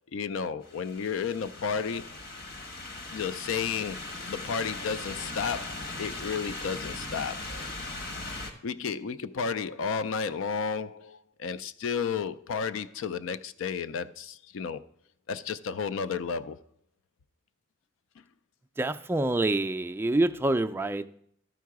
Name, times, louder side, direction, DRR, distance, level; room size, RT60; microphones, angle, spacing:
voice 1, 0.1-2.2 3.1-7.7 8.6-14.8 15.3-16.6, left 6 dB, 85° left, 0.4 m, -32 dB
sound 1, 0.6-8.5, left 2 dB, 50° left, 1.2 m, -39 dB
voice 2, 18.8-21.1, right 2 dB, 10° right, 0.3 m, -26 dB
13.0 x 4.6 x 4.7 m
head